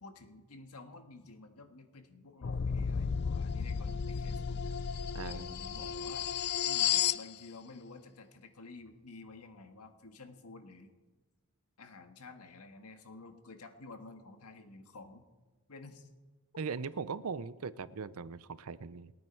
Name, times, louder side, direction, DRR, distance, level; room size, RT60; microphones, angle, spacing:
voice 1, 0.0-4.9 5.2-6.3 6.6-10.9 11.8-15.3 15.7-16.1, left 3 dB, 85° left, 6 dB, 1.6 m, -51 dB
sound 1, 2.4-7.3, left 8 dB, 50° left, 0.4 m, -33 dB
voice 2, 5.1-5.9 16.6-19.1, right 5 dB, 70° right, 17 dB, 0.6 m, -40 dB
28.0 x 9.4 x 4.5 m, 1.2 s
head